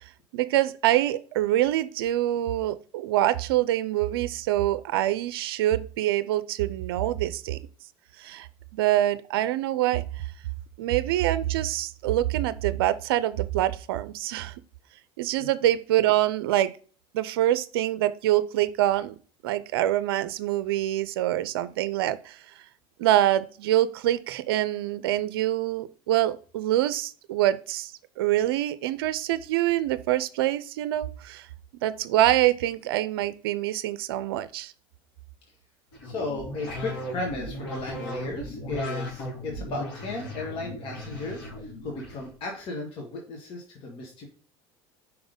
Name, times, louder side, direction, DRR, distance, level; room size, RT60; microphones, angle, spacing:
voice 1, 0.3-7.6 8.2-8.5 8.7-10.0 10.8-14.5 15.2-16.7 17.1-19.1 19.4-22.4 23.0-31.5 31.8-34.7, right 14 dB, 80° right, 14 dB, 0.5 m, -25 dB
sound 1, 35.9-42.3, left 1 dB, 65° left, 3.6 m, -36 dB
voice 2, 36.0-44.3, left 2 dB, 50° left, 1 dB, 1.7 m, -35 dB
5.5 x 3.9 x 5.2 m, 0.40 s
supercardioid pair, 90°, 12 cm